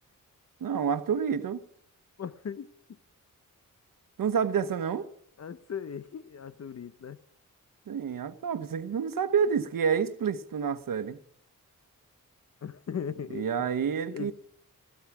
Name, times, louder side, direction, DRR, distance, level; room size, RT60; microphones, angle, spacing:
voice 1, 0.6-1.6 4.2-5.1 7.9-11.2 13.3-14.3, right 7 dB, 90° right, 1.1 m, -28 dB
voice 2, 2.2-3.0 5.4-7.2 12.6-13.7 14.1-14.3, left 7 dB, 50° left, 0.7 m, -38 dB
16.5 x 15.0 x 6.0 m
wide cardioid pair, 110°, 33 cm